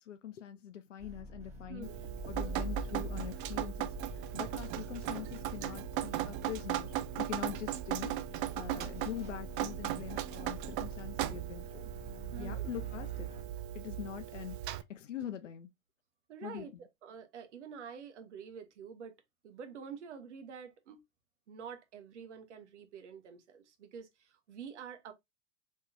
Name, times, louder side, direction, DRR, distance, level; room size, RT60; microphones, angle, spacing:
voice 1, 0.0-1.9 2.3-11.9 12.4-13.3 13.7-15.7 16.4-16.7, left 10 dB, 80° left, 0.5 m, -44 dB
sound 1, 1.0-13.4, right 1 dB, 20° right, 1.4 m, -45 dB
Drip, 1.8-14.8, right 13 dB, 45° right, 0.5 m, -38 dB
voice 2, 12.3-12.7 16.3-16.7 17.0-19.1 19.4-21.0 21.5-25.1, right 7 dB, 70° right, 0.9 m, -47 dB
3.7 x 3.1 x 2.6 m
figure-of-eight pair, 90°, 37 cm